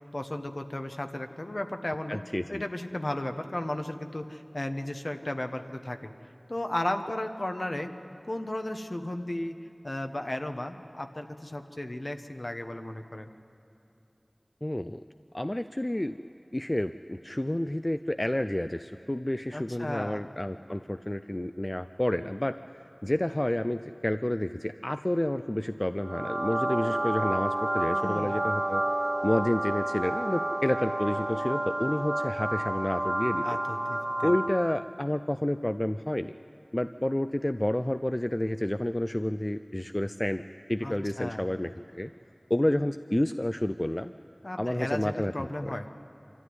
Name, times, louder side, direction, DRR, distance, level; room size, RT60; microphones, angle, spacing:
voice 1, 0.0-2.2 2.5-6.1 6.5-7.9 8.2-9.6 9.8-13.3 19.5-20.2 27.9-28.4 33.4-34.3 40.8-41.5 44.4-45.9, left 1 dB, 60° left, 6 dB, 1.1 m, -34 dB
voice 2, 2.1-2.6 14.6-15.0 15.3-16.2 16.5-22.6 23.0-28.8 29.2-33.5 34.2-36.3 36.7-40.4 40.7-42.1 42.5-44.1 44.6-45.7, left 1 dB, 30° left, 10 dB, 0.4 m, -29 dB
sound 1, 26.0-34.9, right 1 dB, 55° right, 0.6 m, -30 dB
24.5 x 13.5 x 9.6 m, 2.7 s
wide cardioid pair, 40°, 0 cm